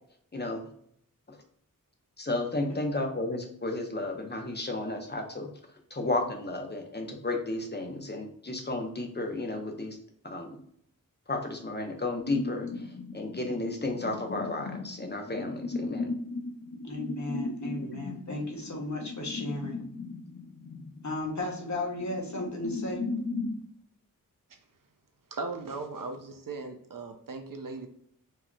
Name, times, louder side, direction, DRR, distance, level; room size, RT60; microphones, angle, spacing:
voice 1, 2.2-5.5 5.9-10.0 10.2-10.6 11.3-12.8 13.1-16.1, left 2 dB, 30° left, 3 dB, 0.9 m, -33 dB
sound 1, 12.2-23.6, left 3 dB, 70° left, 0.6 m, -37 dB
voice 2, 16.8-19.7 21.0-23.0, left 2 dB, 55° left, 0 dB, 1.4 m, -35 dB
voice 3, 25.3-27.9, right 3 dB, 70° right, 6 dB, 0.8 m, -38 dB
4.7 x 2.9 x 2.3 m, 0.67 s
wide cardioid pair, 70°, 34 cm